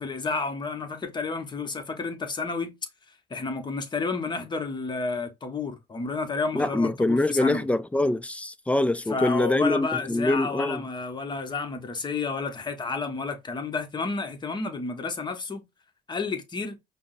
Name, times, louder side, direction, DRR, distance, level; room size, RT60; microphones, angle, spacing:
voice 1, 0.0-2.7 3.3-7.6 9.1-15.6 16.1-16.8, left 4 dB, 25° left, 0.9 m, -31 dB
voice 2, 6.5-10.8, left 2 dB, 10° left, 0.3 m, -24 dB
5.2 x 2.0 x 2.5 m
cardioid pair, 110°, 17 cm